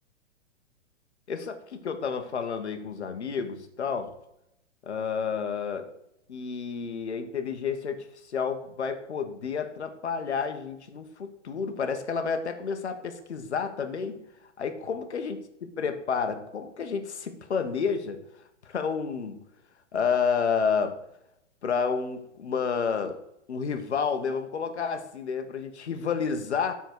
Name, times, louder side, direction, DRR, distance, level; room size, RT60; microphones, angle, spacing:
voice 1, 1.3-4.1 4.8-5.9 6.3-14.2 14.6-15.4 15.8-18.2 18.6-19.4 19.9-21.0 21.6-23.2 23.5-26.7, left 6 dB, 65° left, 7 dB, 1.5 m, -30 dB
13.0 x 4.5 x 4.7 m, 0.81 s
figure-of-eight pair, 115°, 36 cm